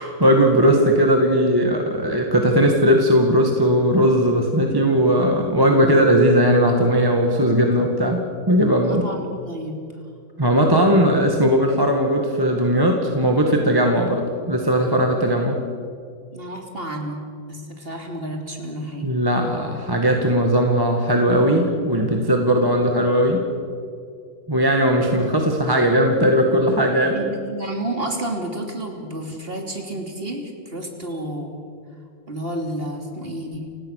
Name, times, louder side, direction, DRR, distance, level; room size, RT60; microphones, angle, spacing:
voice 1, 0.0-9.0 10.4-15.6 19.0-23.4 24.5-27.2, equal, 10° right, 2 dB, 1.9 m, -18 dB
voice 2, 8.8-9.8 16.3-19.2 27.1-31.5 32.3-33.7, right 1 dB, 30° right, 3 dB, 3.2 m, -31 dB
29.5 x 17.5 x 6.7 m, 2.3 s
omnidirectional pair, 2.1 m